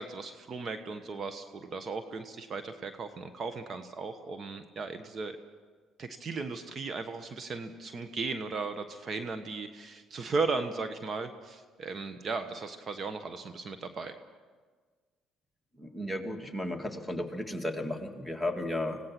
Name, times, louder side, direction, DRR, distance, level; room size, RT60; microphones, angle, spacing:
voice 1, 0.0-5.4 6.0-14.1, right 4 dB, 45° right, 9 dB, 1.3 m, -36 dB
voice 2, 15.7-19.0, left 1 dB, ahead, 5 dB, 2.3 m, -34 dB
25.0 x 17.5 x 6.1 m, 1.5 s
supercardioid pair, 75°, 0 cm